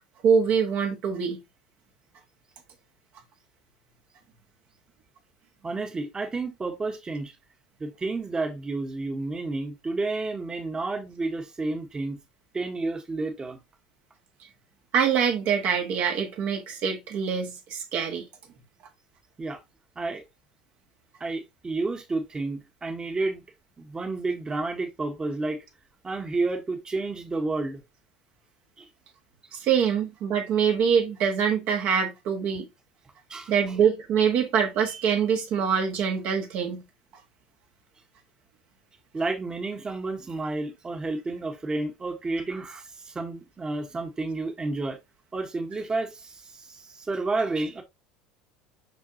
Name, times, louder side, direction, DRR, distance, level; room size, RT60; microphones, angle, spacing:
voice 1, 0.2-1.4 14.9-18.2 29.5-32.7 33.5-36.8, right 7 dB, 50° right, 1.6 m, -24 dB
voice 2, 5.6-7.3 7.8-12.2 12.5-13.6 19.4-19.6 19.9-20.2 21.2-23.4 23.8-25.6 26.0-27.8 28.8-28.9 33.3-33.8 39.1-45.0 45.3-47.8, right 3 dB, 20° right, 1.5 m, -31 dB
5.8 x 5.5 x 2.9 m
hypercardioid pair, 75°, 4 cm